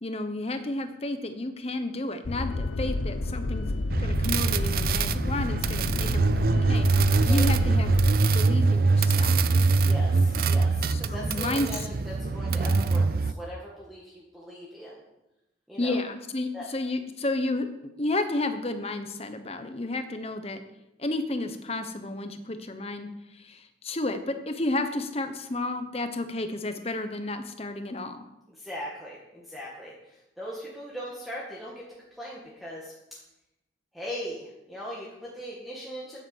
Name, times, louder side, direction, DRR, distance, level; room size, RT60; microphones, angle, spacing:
voice 1, 0.0-3.7 4.0-7.9 8.3-9.4 10.9-11.7 15.8-17.7 18.0-20.6 21.0-28.3, left 2 dB, 30° left, 8 dB, 1.0 m, -31 dB
sound 1, 2.2-8.1, left 2 dB, 85° left, 0.8 m, -30 dB
sound 2, 3.9-13.3, right 3 dB, 50° right, 0.5 m, -23 dB
voice 2, 9.8-15.0 15.7-16.0 16.5-16.7 28.5-31.9 32.2-32.9 33.9-36.2, equal, ahead, -6 dB, 1.9 m, -39 dB
9.8 x 9.3 x 7.3 m, 0.92 s
head